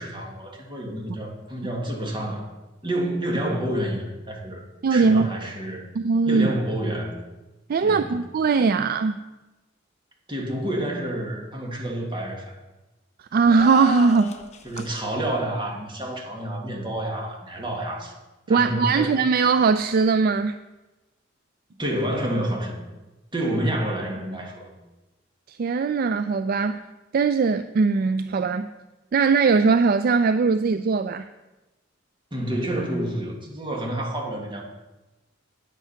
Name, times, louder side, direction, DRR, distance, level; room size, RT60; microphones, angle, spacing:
voice 1, 0.0-2.5 2.8-4.6 4.9-5.9 6.3-7.2 7.8-8.2 10.3-12.5 14.6-18.1 18.5-19.3 21.8-22.8 23.3-24.7 32.3-34.6, right 1 dB, 25° right, -1 dB, 2.1 m, -29 dB
voice 2, 4.8-5.3 6.0-6.5 7.7-9.2 13.3-14.3 18.5-20.6 25.5-26.8 27.1-28.7 29.1-31.3, right 4 dB, 50° right, 11 dB, 0.3 m, -20 dB
sound 1, 13.5-15.0, left 3 dB, 35° left, 1.0 m, -34 dB
9.2 x 8.3 x 5.7 m, 1.1 s
head